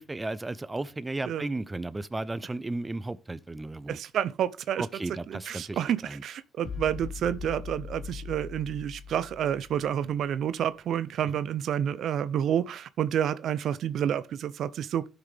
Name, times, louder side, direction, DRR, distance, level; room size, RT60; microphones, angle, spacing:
voice 1, 0.0-4.0 4.8-6.2, right 2 dB, 20° right, 0.6 m, -34 dB
voice 2, 3.9-4.9 5.3-15.1, right 9 dB, 70° right, 0.5 m, -29 dB
sound 1, 6.6-10.1, left 6 dB, 55° left, 1.3 m, -41 dB
13.0 x 6.0 x 3.4 m
cardioid pair, 90°, 0 cm